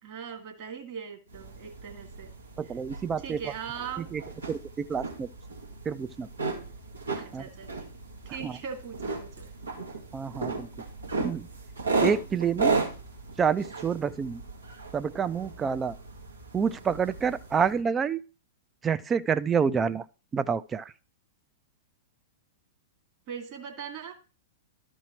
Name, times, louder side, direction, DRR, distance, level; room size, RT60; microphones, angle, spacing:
voice 1, 0.0-2.3 2.6-2.7 3.2-4.1 7.1-7.9 8.3-9.5 23.3-24.1, right 7 dB, 40° right, 2.2 m, -40 dB
sound 1, 1.3-17.8, right 4 dB, 85° right, 2.2 m, -35 dB
voice 2, 2.6-3.4 4.0-4.2 4.5-5.3 5.9-6.3 7.3-7.4 8.4-8.5 10.1-10.7 11.2-11.5 12.0-12.8 13.4-14.4 14.9-16.0 16.5-18.2 18.8-20.0 20.3-20.8, right 6 dB, 20° right, 0.5 m, -28 dB
12.5 x 4.6 x 4.4 m
figure-of-eight pair, 105°, 0 cm